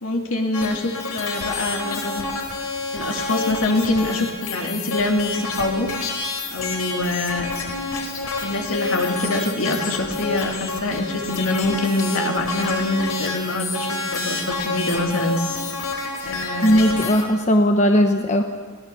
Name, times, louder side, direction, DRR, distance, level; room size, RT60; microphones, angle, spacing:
voice 1, 0.0-2.2 2.9-5.9 6.5-7.5 8.4-15.4 16.2-16.8, left 2 dB, 65° left, 2 dB, 2.8 m, -24 dB
sound 1, 0.5-17.2, left 3 dB, 85° left, 4.7 m, -28 dB
voice 2, 16.6-18.4, equal, 30° left, 4 dB, 1.0 m, -17 dB
22.0 x 18.5 x 7.0 m, 1.5 s
head